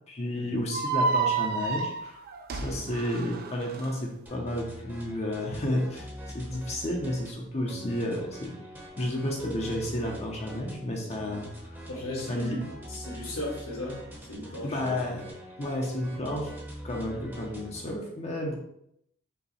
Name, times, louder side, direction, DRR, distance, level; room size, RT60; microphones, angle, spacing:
voice 1, 0.1-2.2 2.5-6.1 6.3-8.6 9.0-11.8 12.3-12.6 14.6-15.3 15.6-16.5 16.8-18.6, left 1 dB, 30° left, 0 dB, 0.6 m, -32 dB
sound 1, 0.7-3.9, right 4 dB, 45° right, 0.4 m, -29 dB
sound 2, 4.3-18.0, equal, 10° right, 0.8 m, -44 dB
voice 2, 11.9-12.6 12.9-15.0 17.0-17.2, left 1 dB, 85° left, -4 dB, 1.7 m, -37 dB
5.5 x 2.2 x 4.1 m, 0.74 s
head